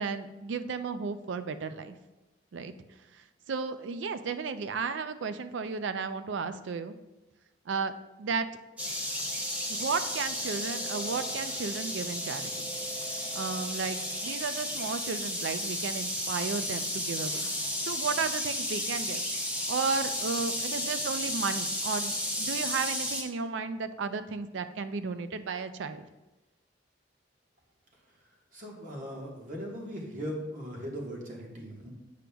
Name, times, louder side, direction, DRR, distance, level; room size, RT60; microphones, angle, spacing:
voice 1, 0.0-2.0 2.5-2.7 3.1-3.2 3.5-7.0 7.7-7.9 8.2-8.5 9.7-12.7 13.3-17.5 17.8-19.2 19.7-26.1, right 5 dB, 75° right, 10 dB, 0.4 m, -34 dB
sound 1, 8.8-23.2, left 1 dB, 10° right, 0.7 m, -33 dB
voice 2, 28.5-31.9, equal, 45° right, -1 dB, 1.3 m, -39 dB
8.3 x 5.0 x 2.3 m, 1.1 s
head